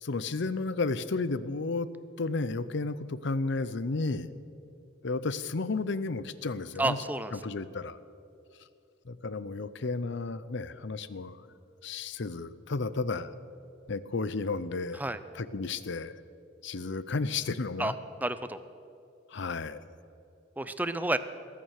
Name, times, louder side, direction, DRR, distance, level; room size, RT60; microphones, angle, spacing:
voice 1, 0.0-1.9 2.2-4.3 5.0-7.0 7.3-8.0 9.1-11.4 11.8-13.3 13.9-15.0 15.3-16.2 16.6-17.9 19.3-19.8, left 3 dB, 65° left, 15 dB, 0.7 m, -32 dB
voice 2, 6.8-7.3 14.9-15.2 17.8-17.9 18.2-18.6 20.6-21.2, right 2 dB, 10° right, 12 dB, 0.5 m, -30 dB
21.0 x 9.3 x 6.5 m, 2.6 s
head